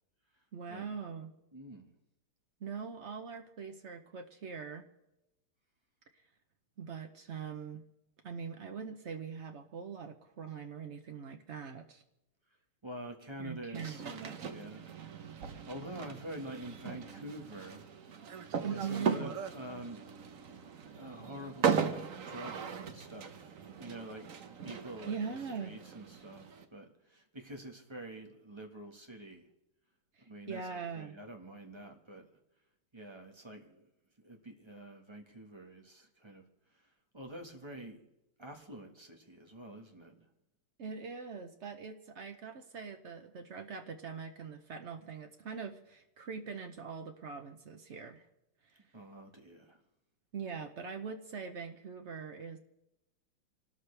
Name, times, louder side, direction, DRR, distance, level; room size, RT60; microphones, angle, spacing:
voice 1, 0.5-1.3 2.6-4.9 6.8-7.8 8.2-12.0 13.4-14.4 18.6-19.3 25.0-25.7 30.2-31.2 40.8-48.2 48.6-48.8 50.3-52.6, right 6 dB, 85° right, 6 dB, 0.6 m, -42 dB
voice 2, 1.5-1.9 12.8-14.9 15.7-17.9 18.7-20.0 20.9-22.0 22.2-22.5 22.9-29.5 30.2-32.3 32.9-33.9 34.2-36.4 36.7-36.9 37.1-38.1 38.4-40.2 48.9-49.8, right 1 dB, 15° right, 3 dB, 1.2 m, -47 dB
sound 1, 13.7-26.6, right 7 dB, 50° right, 1.1 m, -38 dB
26.5 x 13.0 x 3.3 m, 0.90 s
omnidirectional pair, 2.3 m